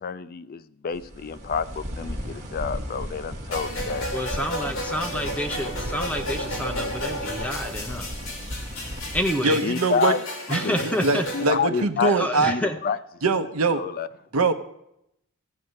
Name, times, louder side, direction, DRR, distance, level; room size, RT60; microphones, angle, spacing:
voice 1, 0.0-4.1 9.6-10.2 10.6-10.8 11.3-12.1 12.5-13.0 13.7-14.1, left 6 dB, 40° left, 15 dB, 0.4 m, -28 dB
sound 1, 0.9-9.2, equal, 35° right, 2.1 m, -35 dB
sound 2, 3.5-11.5, left 1 dB, 60° left, 3.2 m, -33 dB
voice 2, 4.1-8.1 9.1-9.6 10.5-11.2 12.0-12.8, equal, 5° left, 4 dB, 0.9 m, -28 dB
voice 3, 9.4-10.1 10.5-12.5 13.2-13.8 14.3-14.5, right 3 dB, 75° right, 8 dB, 0.9 m, -23 dB
14.5 x 5.4 x 8.1 m, 0.79 s
head